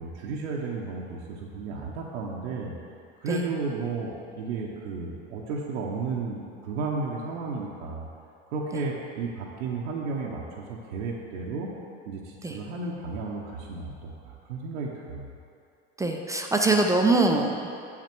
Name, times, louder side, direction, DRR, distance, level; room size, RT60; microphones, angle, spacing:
voice 1, 0.0-2.7 3.2-8.1 8.5-11.7 12.0-15.3, right 4 dB, 75° right, -4 dB, 1.0 m, -33 dB
voice 2, 16.0-17.7, right 2 dB, 10° right, 2 dB, 0.5 m, -23 dB
6.7 x 6.1 x 4.5 m, 2.4 s
hypercardioid pair, 95°, 35 cm